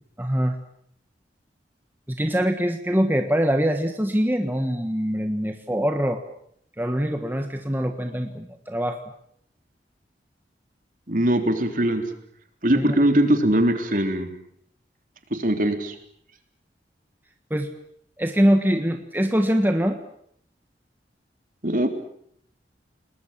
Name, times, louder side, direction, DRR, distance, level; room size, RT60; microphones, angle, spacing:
voice 1, 0.2-0.6 2.1-6.2 6.8-9.0 12.7-13.1 17.5-17.7 18.2-20.0, equal, 10° right, 5 dB, 1.5 m, -23 dB
voice 2, 11.1-12.0 12.6-14.3 15.3-15.9 21.6-21.9, right 1 dB, 50° right, 5 dB, 3.5 m, -21 dB
29.5 x 20.5 x 7.5 m, 0.68 s
head